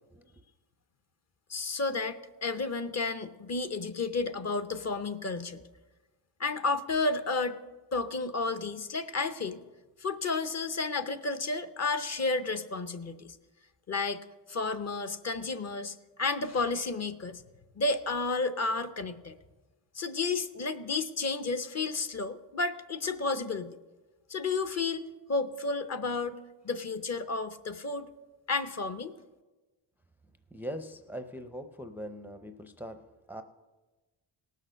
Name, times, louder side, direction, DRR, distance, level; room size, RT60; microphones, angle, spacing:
voice 1, 1.5-5.6 6.4-7.6 7.9-9.6 10.0-13.4 13.9-14.2 14.5-17.4 17.8-19.3 19.9-23.8 24.3-26.4 26.6-28.1 28.5-29.1, left 3 dB, 35° left, 10 dB, 0.7 m, -32 dB
voice 2, 30.5-33.0 33.3-33.4, equal, 5° right, 8 dB, 0.5 m, -41 dB
18.0 x 6.6 x 6.3 m, 1.2 s
cardioid pair, 120°, 44 cm